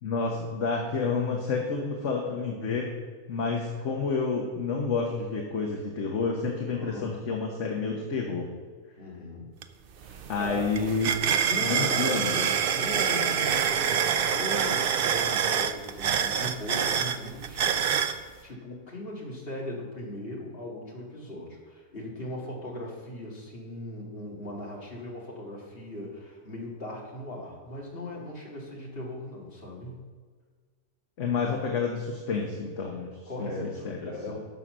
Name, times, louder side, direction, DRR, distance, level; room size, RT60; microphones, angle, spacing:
voice 1, 0.0-2.9 3.3-8.5 10.3-11.1 11.6-12.5 31.2-33.1 33.4-34.4, left 4 dB, 55° left, 0 dB, 1.4 m, -29 dB
voice 2, 6.7-7.2 9.0-9.5 10.0-10.6 11.5-12.1 12.7-30.0 32.9-33.0 33.3-34.4, left 1 dB, 40° left, -3 dB, 2.4 m, -39 dB
sound 1, 9.6-9.7 10.0-18.2, right 8 dB, 85° right, 0.5 m, -26 dB
11.5 x 5.7 x 6.3 m, 1.5 s
omnidirectional pair, 1.6 m